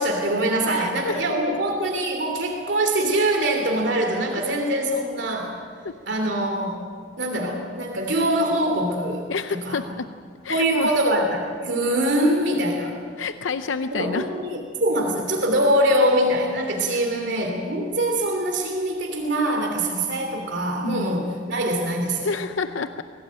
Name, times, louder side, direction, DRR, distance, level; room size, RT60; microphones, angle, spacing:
voice 1, 0.0-5.5 6.1-6.8 7.2-9.2 9.5-9.8 10.5-12.9 13.9-22.3, right 1 dB, 65° right, 2 dB, 3.0 m, -23 dB
voice 2, 0.7-1.2 5.8-5.9 9.3-10.1 10.4-10.9 13.2-14.3 16.9-17.0 20.8-21.1 22.2-23.0, left 4 dB, 85° left, 9 dB, 0.7 m, -29 dB
23.0 x 17.5 x 8.9 m, 2.1 s
head